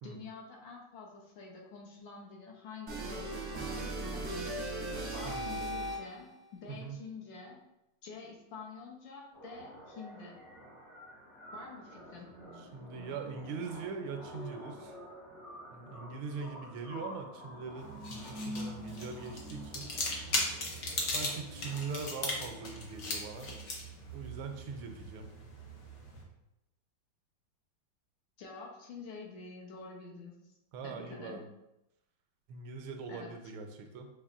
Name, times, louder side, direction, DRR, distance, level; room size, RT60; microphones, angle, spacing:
voice 1, 0.0-4.7 5.1-7.6 8.0-10.4 11.5-12.3 28.4-30.4 30.8-31.4 33.1-33.3, left 4 dB, 70° left, -1 dB, 1.4 m, -47 dB
sound 1, 2.9-6.3, right 1 dB, 55° right, 0.8 m, -37 dB
voice 2, 6.7-7.0 12.6-15.0 15.7-19.9 21.1-23.5 24.1-25.3 30.7-31.4 32.5-34.1, right 5 dB, 80° right, 5 dB, 1.4 m, -42 dB
sound 2, 9.3-23.3, equal, 45° left, 0.9 m, -48 dB
sound 3, 17.8-26.2, left 2 dB, 90° left, 0.6 m, -38 dB
6.4 x 3.1 x 2.4 m, 0.89 s
omnidirectional pair, 2.4 m